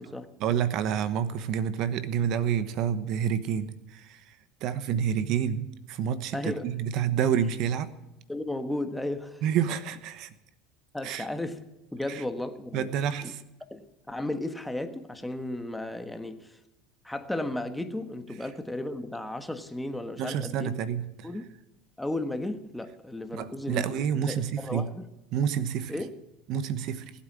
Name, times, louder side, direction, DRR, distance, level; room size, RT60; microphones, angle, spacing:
voice 1, 0.4-4.2 4.6-7.9 9.4-10.3 11.0-11.3 12.1-12.2 12.7-13.4 20.2-21.3 23.3-24.9 25.3-25.9 26.5-27.1, right 8 dB, 60° right, 1.1 m, -28 dB
voice 2, 6.3-6.7 8.3-9.4 10.9-11.6 11.9-12.9 13.2-13.3 13.7-16.6 17.0-20.8 21.2-21.4 22.0-25.1 25.9-26.1, left 1 dB, 5° left, 1.4 m, -34 dB
19.5 x 8.5 x 7.6 m
supercardioid pair, 105°, 0 cm